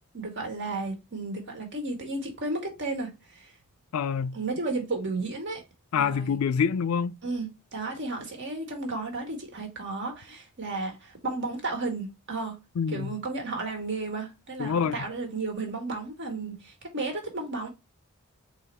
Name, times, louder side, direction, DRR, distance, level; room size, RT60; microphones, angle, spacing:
voice 1, 0.1-3.5 4.3-5.6 6.0-6.3 7.2-12.6 12.9-17.7, right 3 dB, 55° right, 1.6 m, -33 dB
voice 2, 3.9-4.4 5.9-7.2 12.8-13.2 14.6-15.0, left 6 dB, 75° left, 0.4 m, -26 dB
4.0 x 2.9 x 4.2 m
head